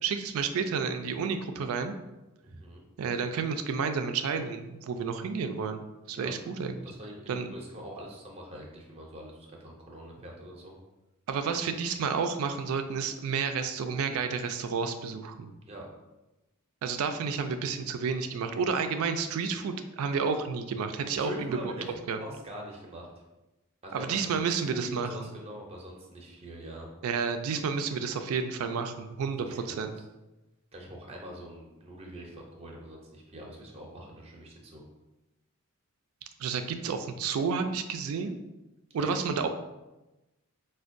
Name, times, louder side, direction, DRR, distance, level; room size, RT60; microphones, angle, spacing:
voice 1, 0.0-1.9 3.0-5.8 6.1-6.9 7.3-7.5 11.3-15.5 16.8-21.7 22.1-22.2 23.9-25.3 27.0-29.9 36.4-38.4 38.9-39.5, right 5 dB, 75° right, 8 dB, 0.3 m, -31 dB
voice 2, 2.4-2.9 6.1-6.3 6.8-10.8 15.7-15.9 21.2-21.9 22.2-23.1 23.8-26.9 29.3-29.9 30.7-34.9 39.0-39.3, right 1 dB, 30° right, -1 dB, 0.6 m, -44 dB
4.3 x 2.2 x 2.5 m, 1.0 s
head